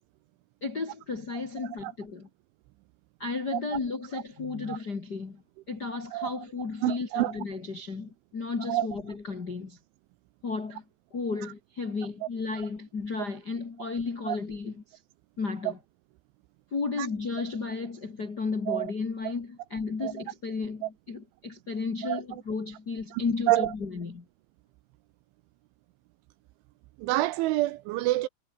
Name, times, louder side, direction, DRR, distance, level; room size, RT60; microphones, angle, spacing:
voice 1, 0.6-2.3 3.2-5.4 5.7-9.8 10.4-10.8 11.1-15.0 15.4-15.8 16.7-24.2, left 4 dB, 45° left, 1.2 m, -33 dB
voice 2, 1.6-1.9 3.5-3.6 4.7-4.8 6.1-6.5 6.8-7.3 8.7-8.9 12.2-12.3 14.3-14.4 17.0-17.1 18.7-18.9 20.0-20.1 20.8-20.9 22.0-22.4 23.1-23.2 23.5-23.7 27.0-28.3, right 17 dB, 80° right, 3.0 m, -28 dB
omnidirectional pair, 5.9 m